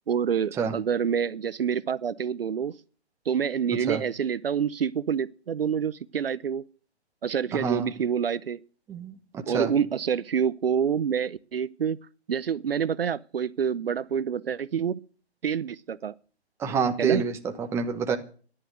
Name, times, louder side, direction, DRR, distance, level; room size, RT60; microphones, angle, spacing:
voice 1, 0.1-2.8 3.3-6.6 7.2-8.6 9.5-12.0 12.3-15.0 15.4-16.1 17.0-17.2, right 7 dB, 60° right, 0.8 m, -27 dB
voice 2, 7.5-7.9 8.9-9.7 16.6-18.2, right 6 dB, 10° right, 1.1 m, -27 dB
14.0 x 11.0 x 7.9 m
figure-of-eight pair, 145°, 33 cm